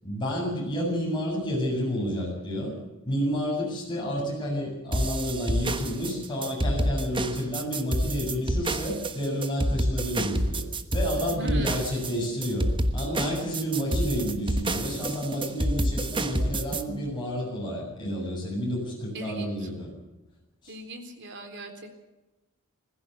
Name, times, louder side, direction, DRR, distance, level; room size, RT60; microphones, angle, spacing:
voice 1, 0.0-2.7 3.0-10.6 10.9-19.9 20.6-20.7, equal, 20° left, -4 dB, 7.9 m, -30 dB
sound 1, 4.9-16.8, right 1 dB, 25° right, 1.3 m, -28 dB
voice 2, 11.3-11.8 19.1-19.7 20.7-22.0, equal, 55° right, 5 dB, 3.8 m, -39 dB
21.0 x 15.5 x 8.3 m, 1.0 s
head